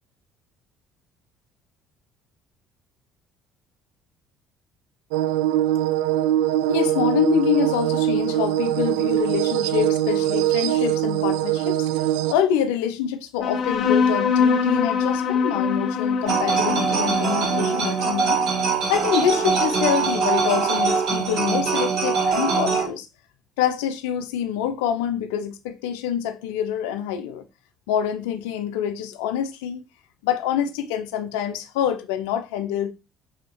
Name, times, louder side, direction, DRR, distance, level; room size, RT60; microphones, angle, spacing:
sound 1, 5.1-12.3, right 13 dB, 90° right, 0.4 m, -22 dB
voice 1, 6.7-11.8 12.3-18.4 18.9-23.1 23.6-27.5 27.9-29.8 30.2-32.9, left 9 dB, 90° left, 0.8 m, -26 dB
sound 2, 13.4-20.3, left 5 dB, 60° left, 1.6 m, -24 dB
sound 3, 16.2-22.9, right 5 dB, 75° right, 3.9 m, -22 dB
7.4 x 3.1 x 4.6 m
supercardioid pair, 80°, 0 cm